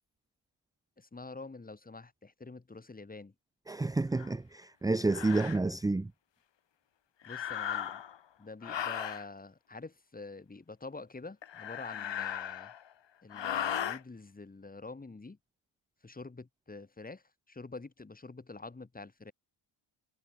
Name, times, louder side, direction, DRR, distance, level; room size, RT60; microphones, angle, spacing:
voice 1, 1.0-3.3 7.2-8.0 8.4-12.7 13.2-15.4 16.0-19.3, left 3 dB, 15° left, 4.0 m, -47 dB
voice 2, 3.7-6.1, right 2 dB, 10° right, 0.4 m, -30 dB
sound 1, 4.2-4.3 5.1-5.6 7.2-8.2 8.6-9.2 11.4-12.9 13.3-14.0, left 9 dB, 60° left, 5.7 m, -36 dB
wide cardioid pair, 165°, 49 cm